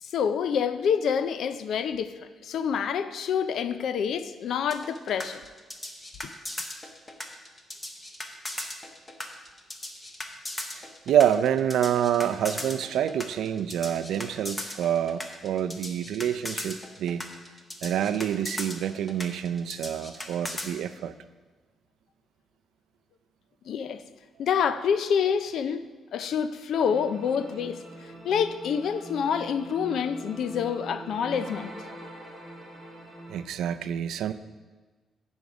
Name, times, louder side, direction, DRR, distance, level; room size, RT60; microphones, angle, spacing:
voice 1, 0.0-5.4 23.7-24.0 24.4-25.8 26.1-31.7, left 7 dB, 60° left, 12 dB, 0.5 m, -27 dB
sound 1, 4.7-20.7, left 1 dB, 15° left, 0.8 m, -37 dB
voice 2, 11.1-17.2 17.8-21.1 33.3-34.3, right 9 dB, 75° right, 11 dB, 0.4 m, -27 dB
sound 2, 26.9-33.4, right 1 dB, 5° right, 1.6 m, -43 dB
14.5 x 5.2 x 4.8 m, 1.4 s
cardioid pair, 180°, 0 cm